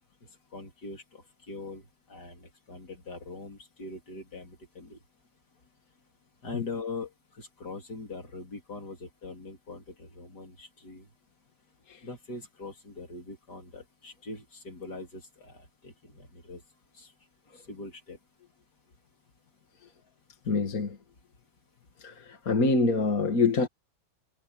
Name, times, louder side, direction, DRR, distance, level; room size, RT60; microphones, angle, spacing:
voice 1, 0.5-5.0 6.4-11.1 12.0-16.6 16.9-17.1 17.7-18.2, left 3 dB, 75° left, 4.3 m, -42 dB
voice 2, 20.5-21.0 22.0-23.7, left 3 dB, 55° left, 2.3 m, -25 dB
omnidirectional pair, 1.8 m